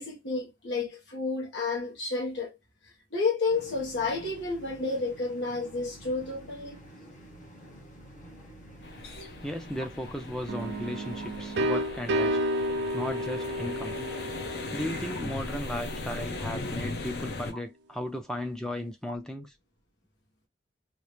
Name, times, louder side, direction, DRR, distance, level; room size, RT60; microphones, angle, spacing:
voice 1, 0.0-2.6 3.1-6.8 11.2-11.3, left 3 dB, 90° left, 1.4 m, -31 dB
sound 1, 3.5-11.6, right 1 dB, 45° left, 1.2 m, -49 dB
sound 2, 8.8-17.5, left 2 dB, 65° left, 0.7 m, -38 dB
voice 2, 9.4-12.4 12.9-13.9 14.7-19.5, left 1 dB, 5° left, 0.3 m, -35 dB
sound 3, 10.5-16.2, equal, 80° right, 0.4 m, -32 dB
2.9 x 2.6 x 3.3 m
head